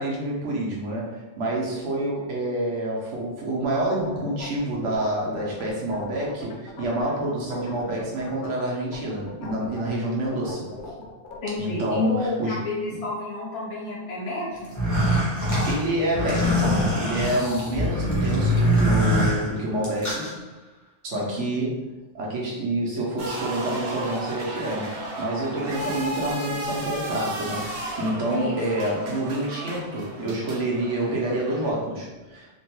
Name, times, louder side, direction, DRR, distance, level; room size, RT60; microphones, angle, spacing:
voice 1, 0.0-10.7 11.6-12.6 15.7-20.3 21.0-21.8 22.1-32.5, right 1 dB, 90° right, -3 dB, 1.1 m, -28 dB
sound 1, 3.6-7.2 7.5-8.6 8.9-12.3, left 3 dB, 55° left, 0.6 m, -40 dB
voice 2, 11.4-14.7 21.1-21.5 28.3-28.6, left 2 dB, 80° left, -5 dB, 1.3 m, -30 dB
sound 2, 14.6-20.3, equal, 20° left, 0.6 m, -23 dB
sound 3, 23.2-31.7, right 1 dB, 60° right, 0.8 m, -34 dB
3.0 x 2.2 x 2.9 m, 1.2 s
omnidirectional pair, 1.2 m